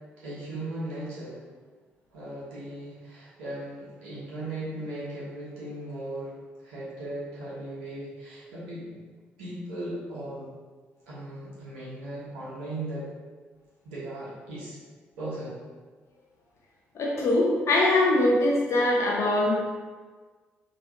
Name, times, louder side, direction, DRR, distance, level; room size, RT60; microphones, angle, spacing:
voice 1, 0.2-1.4 2.1-9.0 9.4-10.5 11.1-13.1 13.8-14.8 15.2-15.6, right 1 dB, 75° right, -8 dB, 1.2 m, -37 dB
voice 2, 16.9-19.5, left 2 dB, 50° left, -4 dB, 0.7 m, -22 dB
3.9 x 3.0 x 2.7 m, 1.4 s
figure-of-eight pair, 45°, 6 cm